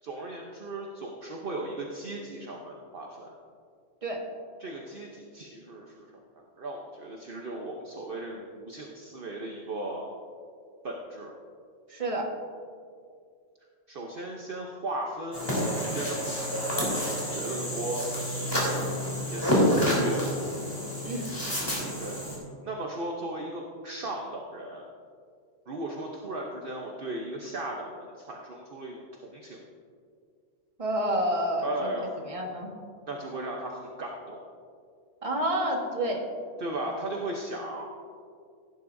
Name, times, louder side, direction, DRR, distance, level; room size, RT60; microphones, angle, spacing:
voice 1, 0.0-3.3 4.6-10.1 10.8-11.3 13.9-20.3 22.0-22.2 22.6-24.8 25.7-29.6 31.6-32.1 33.1-34.4 36.6-37.9, right 1 dB, 50° right, 0 dB, 1.0 m, -37 dB
voice 2, 11.9-12.3 21.0-21.3 30.8-31.9 32.2-32.7 35.2-36.2, right 1 dB, 25° right, 0 dB, 1.4 m, -29 dB
sound 1, 15.3-22.4, equal, 20° left, 3.3 m, -28 dB
16.5 x 10.5 x 2.7 m, 2.2 s
omnidirectional pair, 1.3 m